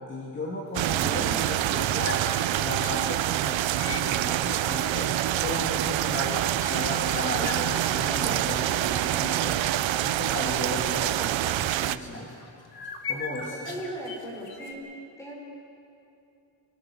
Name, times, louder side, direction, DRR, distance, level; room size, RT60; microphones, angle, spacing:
voice 1, 0.0-2.3 2.6-9.6 10.0-12.3 13.1-13.6, left 1 dB, 25° left, -3 dB, 2.3 m, -35 dB
sound 1, 0.7-3.2 3.7-4.1 4.6-5.2 5.5-6.2 6.6-7.1 7.4-8.8 9.2-9.3 9.7-9.9 10.5-10.6 12.0-14.7, left 5 dB, 55° left, 2.3 m, -40 dB
sound 2, 0.7-12.0, right 13 dB, 80° right, 0.7 m, -26 dB
voice 2, 0.8-1.5 13.5-14.8 15.2-15.3, right 1 dB, 5° left, -3 dB, 5.2 m, -38 dB
sound 3, 4.3-4.8 6.9-9.6, right 3 dB, 50° right, 3.9 m, -45 dB
29.0 x 18.5 x 6.2 m, 2.7 s
wide cardioid pair, 175°, 45 cm